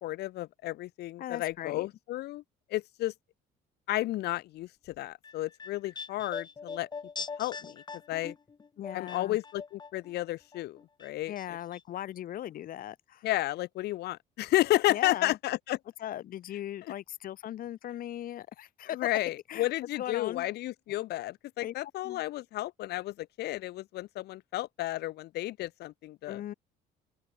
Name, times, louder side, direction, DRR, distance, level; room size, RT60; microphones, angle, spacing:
voice 1, 0.0-2.4 2.7-3.1 3.9-6.9 7.4-8.3 8.9-11.3 13.2-15.8 18.9-26.4, left 16 dB, 75° left, 1.3 m, -32 dB
voice 2, 1.2-1.9 8.8-9.4 11.3-13.3 14.9-15.4 16.0-19.0 19.5-19.7 19.9-20.5 21.6-21.7 22.0-22.2 26.3-26.5, left 12 dB, 55° left, 1.1 m, -39 dB
sound 1, 5.0-10.2 10.5-11.5 11.7-11.8, left 5 dB, 25° left, 1.2 m, -42 dB
open air
cardioid pair, 110°, 17 cm